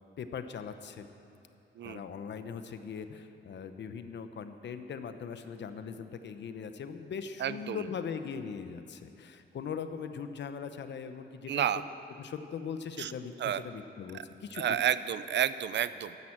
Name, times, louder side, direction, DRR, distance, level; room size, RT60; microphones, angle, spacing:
voice 1, 0.2-1.1 1.8-11.7 12.2-14.8, left 6 dB, 65° left, 9 dB, 0.9 m, -40 dB
voice 2, 7.4-7.8 11.5-11.8 13.0-13.1 13.4-13.6 14.1-14.3 14.5-16.2, right 10 dB, 65° right, 14 dB, 0.5 m, -30 dB
14.0 x 11.0 x 7.4 m, 2.7 s
cardioid pair, 115°, 20 cm